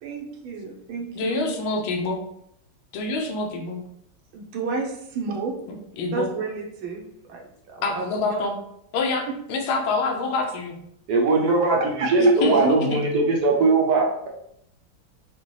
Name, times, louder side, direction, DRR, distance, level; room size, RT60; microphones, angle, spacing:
voice 1, 0.0-1.4 4.3-5.5 6.1-8.4 11.4-12.1, right 4 dB, 80° right, 0 dB, 1.7 m, -32 dB
voice 2, 1.2-2.2 2.9-3.8 5.7-6.3 7.8-8.5 8.9-10.8 12.2-13.0, left 3 dB, 85° left, 3 dB, 1.6 m, -27 dB
voice 3, 11.1-14.3, right 3 dB, 65° right, 0 dB, 1.1 m, -20 dB
5.2 x 2.5 x 3.1 m, 0.75 s
omnidirectional pair, 2.2 m